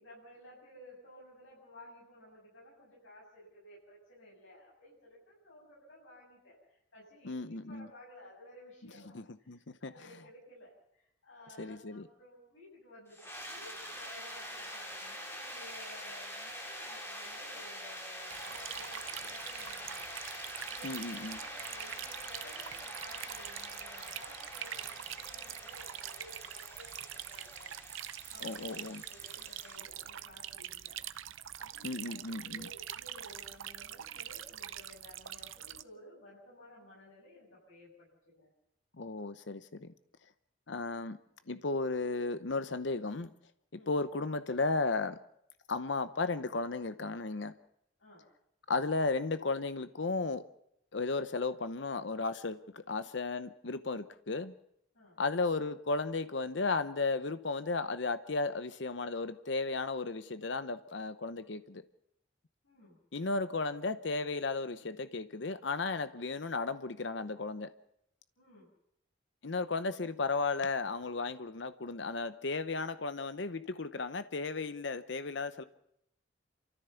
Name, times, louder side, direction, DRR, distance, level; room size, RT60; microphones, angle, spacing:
voice 1, 0.0-9.1 9.4-20.1 20.7-27.8 28.3-31.0 31.5-32.2 32.5-38.5 43.7-44.0 48.0-48.3 54.9-55.2 62.6-63.0 68.4-68.7, left 1 dB, 85° left, -5 dB, 7.4 m, -55 dB
voice 2, 7.2-7.9 9.1-9.9 11.6-12.1 20.8-21.4 28.4-29.0 31.8-32.7 39.0-39.9 40.7-41.2 41.5-43.3 43.7-45.2 45.7-47.5 48.7-50.4 50.9-54.5 55.2-61.8 63.1-67.7 69.4-75.6, left 3 dB, 65° left, 11 dB, 0.8 m, -34 dB
sound 1, 13.1-29.8, equal, 10° left, 3.2 m, -45 dB
sound 2, 18.3-35.8, right 11 dB, 85° right, 0.7 m, -44 dB
29.0 x 14.0 x 7.0 m, 0.77 s
head